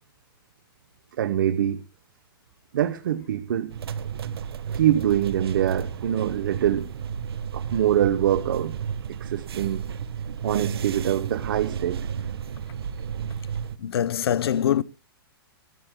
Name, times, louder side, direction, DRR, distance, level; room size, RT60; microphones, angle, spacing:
voice 1, 1.2-1.8 2.7-3.7 4.7-6.9 7.5-8.8 9.1-9.8 10.4-12.1, right 11 dB, 60° right, 0.9 m, -24 dB
sound 1, 3.7-13.8, right 7 dB, 85° right, 1.3 m, -32 dB
voice 2, 13.8-14.8, left 10 dB, 85° left, 0.7 m, -23 dB
24.0 x 13.0 x 2.2 m
hypercardioid pair, 175°, 13 cm